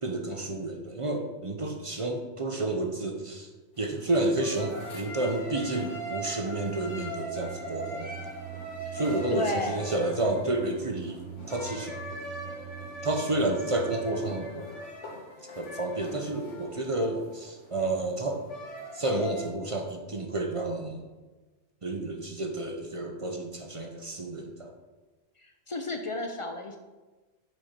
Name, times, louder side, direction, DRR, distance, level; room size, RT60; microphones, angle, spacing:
voice 1, 0.0-3.5 3.8-8.1 8.9-11.2 11.5-12.0 13.0-14.7 15.6-18.4 18.9-21.0 21.8-24.7, right 2 dB, 35° right, 3 dB, 0.6 m, -30 dB
flute in subway, 3.8-19.5, equal, 80° left, 1.6 m, -41 dB
sound 1, 6.9-14.4, right 11 dB, 75° right, 0.9 m, -44 dB
voice 2, 9.3-9.9 25.4-26.8, left 2 dB, 45° left, 5 dB, 0.4 m, -32 dB
7.0 x 4.4 x 5.1 m, 1.2 s
omnidirectional pair, 1.2 m